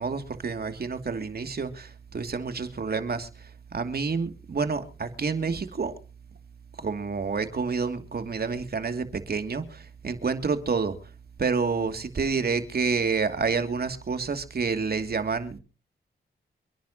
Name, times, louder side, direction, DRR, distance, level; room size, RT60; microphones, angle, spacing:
voice 1, 0.0-3.3 3.7-5.9 6.8-11.0 11.4-15.6, right 5 dB, 50° right, 2.6 m, -28 dB
28.5 x 10.5 x 2.9 m
cardioid pair, 60°, 20 cm